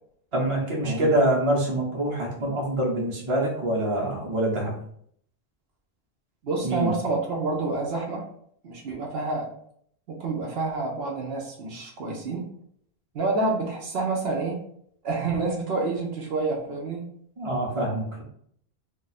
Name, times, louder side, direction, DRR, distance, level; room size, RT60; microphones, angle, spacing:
voice 1, 0.3-4.7 6.6-7.0 17.4-18.2, right 1 dB, 30° right, -2 dB, 0.8 m, -25 dB
voice 2, 6.4-8.3 8.6-9.5 10.1-12.5 13.1-14.6 15.0-17.1, right 3 dB, 70° right, -1 dB, 0.9 m, -28 dB
2.4 x 2.4 x 4.0 m, 0.66 s
omnidirectional pair, 1.1 m